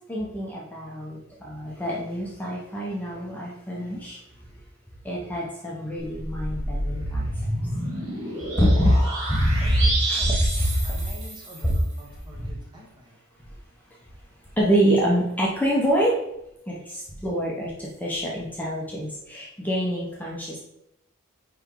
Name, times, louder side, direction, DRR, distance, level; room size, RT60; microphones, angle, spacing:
voice 1, 0.1-4.2 5.0-7.5 8.6-8.9 9.3-11.1 11.6-11.7 12.4-12.5 14.6-16.2 16.7-20.6, equal, 10° left, -5 dB, 1.0 m, -25 dB
sound 1, 6.0-11.8, right 1 dB, 65° right, 2.6 m, -30 dB
voice 2, 9.6-10.3 10.8-13.2, equal, 20° right, -2 dB, 1.6 m, -46 dB
9.6 x 3.4 x 3.9 m, 0.82 s
head